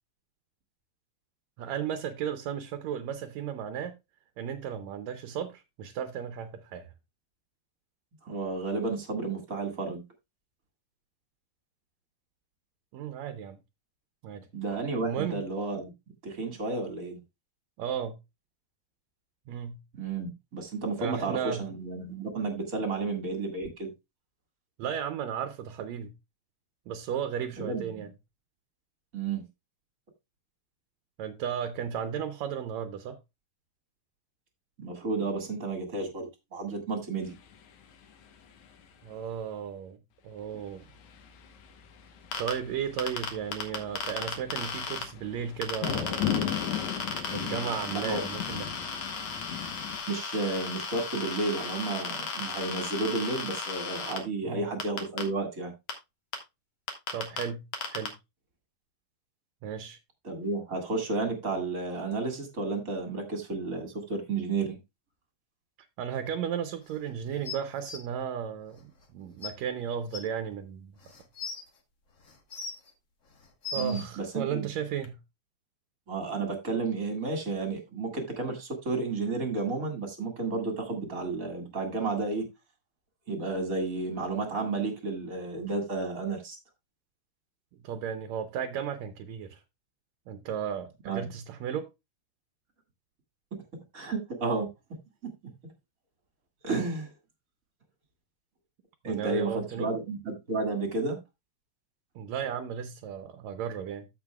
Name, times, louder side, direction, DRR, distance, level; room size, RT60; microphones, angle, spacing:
voice 1, 1.6-3.9 4.4-6.9 12.9-13.6 14.2-14.5 15.0-15.4 17.8-18.2 19.5-19.8 21.0-21.7 24.8-26.1 26.9-28.1 31.2-33.2 39.0-40.0 40.2-40.8 42.4-46.3 47.3-48.8 54.4-54.7 57.1-57.6 57.9-58.1 59.6-60.0 66.0-70.9 73.7-75.2 87.8-89.6 90.3-91.9 99.1-99.9 102.2-104.1, right 8 dB, 75° right, 1.9 m, -34 dB
voice 2, 8.3-10.0 14.5-15.9 16.2-17.2 19.9-23.9 27.6-28.1 29.1-29.4 34.8-37.3 47.9-48.2 50.1-55.7 60.2-64.8 73.8-74.7 76.1-82.5 83.3-86.6 91.1-91.3 93.9-94.7 96.6-97.1 99.0-101.2, right 3 dB, 30° right, 1.9 m, -32 dB
sound 1, 37.2-39.1 40.5-50.0, left 9 dB, 80° left, 2.5 m, -38 dB
sound 2, 42.3-42.5 43.0-45.0 45.6-54.2 54.8-55.2 55.9-56.0 56.3-56.4 56.9-57.4 57.7-58.1, left 5 dB, 60° left, 2.7 m, -35 dB
sound 3, 67.4-68.0 69.0-69.1 69.4-69.5 70.1-70.2 71.0-71.6 72.3-72.9 73.4-74.0 75.0-75.1, left 4 dB, 45° left, 1.0 m, -38 dB
14.5 x 5.5 x 2.3 m
omnidirectional pair, 3.4 m